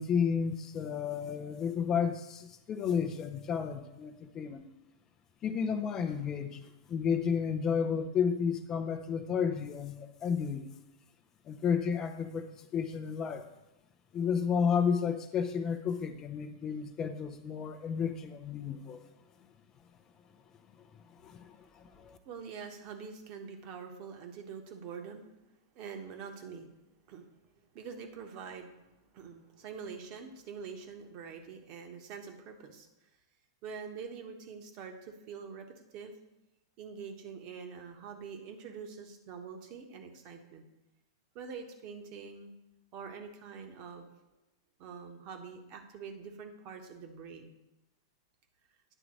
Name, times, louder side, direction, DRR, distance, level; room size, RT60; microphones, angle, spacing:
voice 1, 0.0-4.6 5.4-6.6 6.9-10.7 11.5-13.4 14.1-19.0 21.2-22.2, left 6 dB, 25° left, 8 dB, 0.6 m, -32 dB
voice 2, 22.2-25.3 25.7-26.7 27.1-27.3 27.7-28.8 29.1-32.9 33.6-35.7 35.9-36.1 36.8-40.6 41.3-42.5 42.9-44.1 44.8-47.5, right 6 dB, 40° right, 4 dB, 1.2 m, -45 dB
10.0 x 3.9 x 6.2 m, 0.93 s
figure-of-eight pair, 100°, 2 cm